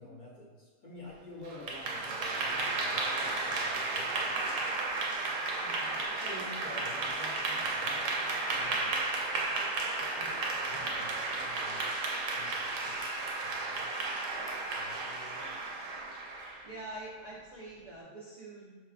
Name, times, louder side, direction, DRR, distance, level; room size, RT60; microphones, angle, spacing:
voice 1, 0.0-4.7 6.2-8.1 8.5-9.0 10.1-13.0 13.4-13.9 14.3-15.6, left 2 dB, 50° left, -5 dB, 0.7 m, -50 dB
Clapping / Applause, 1.4-16.7, right 3 dB, 85° right, 1.0 m, -33 dB
voice 2, 5.5-6.1 16.6-18.8, right 2 dB, 65° right, -5 dB, 0.4 m, -45 dB
5.6 x 2.2 x 2.3 m, 1.4 s
omnidirectional pair, 1.3 m